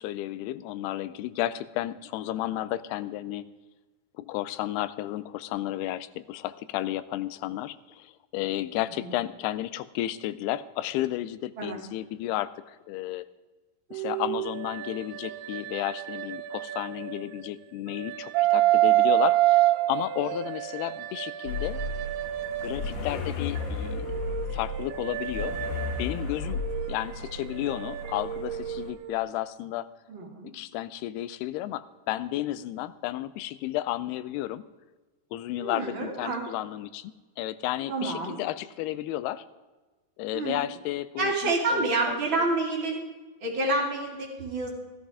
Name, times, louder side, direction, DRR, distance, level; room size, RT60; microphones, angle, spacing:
voice 1, 0.0-3.5 4.2-13.3 13.9-21.8 22.6-24.1 24.5-25.6 26.0-26.6 26.9-29.9 30.4-34.6 35.3-39.4 40.2-42.2, left 14 dB, 80° left, 15 dB, 2.6 m, -32 dB
sound 1, 13.9-17.5 17.9-23.1 23.6-29.1, right 15 dB, 80° right, 2.6 m, -28 dB
sound 2, 21.5-28.9, left 3 dB, 50° left, 2.3 m, -34 dB
voice 2, 30.1-30.5 35.6-36.4 37.9-38.4 40.3-40.5 41.2-43.0 43.4-44.7, right 2 dB, 35° right, -1 dB, 2.6 m, -28 dB
14.0 x 13.5 x 4.8 m, 1.3 s
omnidirectional pair, 4.7 m